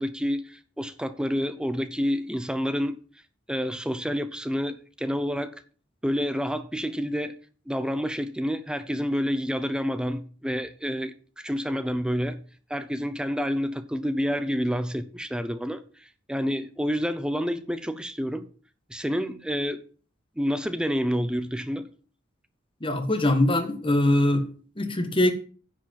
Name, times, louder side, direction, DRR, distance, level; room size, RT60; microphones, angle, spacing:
voice 1, 0.0-3.0 3.5-5.5 6.0-7.4 7.7-12.4 12.7-15.8 16.3-18.5 18.9-19.8 20.4-21.9, equal, 5° right, 0.7 m, -28 dB
voice 2, 22.8-24.5 24.8-25.3, left 1 dB, 25° left, 1.5 m, -22 dB
10.0 x 5.1 x 7.5 m
head